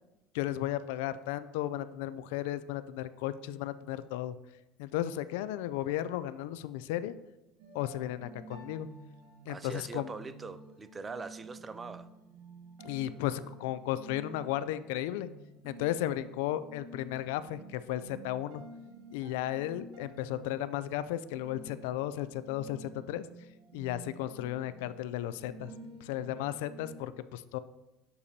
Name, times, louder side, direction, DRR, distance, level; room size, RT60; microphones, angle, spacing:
voice 1, 0.3-4.3 4.8-7.1 7.7-8.9 9.5-10.1 12.8-15.3 15.6-18.6 19.1-23.2 23.7-25.7 26.0-27.6, left 13 dB, 85° left, 14 dB, 0.3 m, -34 dB
sound 1, 7.6-27.0, right 3 dB, 75° right, 1.1 m, -51 dB
voice 2, 9.5-12.1, right 4 dB, 20° right, 14 dB, 0.3 m, -42 dB
8.2 x 6.7 x 2.8 m, 0.98 s
cardioid pair, 140°, 0 cm